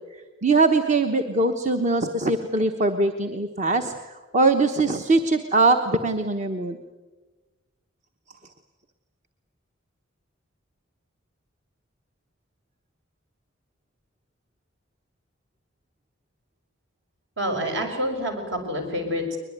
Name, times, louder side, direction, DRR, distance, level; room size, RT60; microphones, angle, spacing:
voice 1, 0.1-6.8, right 3 dB, 35° right, 6 dB, 1.1 m, -22 dB
voice 2, 17.4-19.4, equal, 60° right, 4 dB, 6.0 m, -27 dB
22.5 x 21.5 x 9.4 m, 1.2 s
head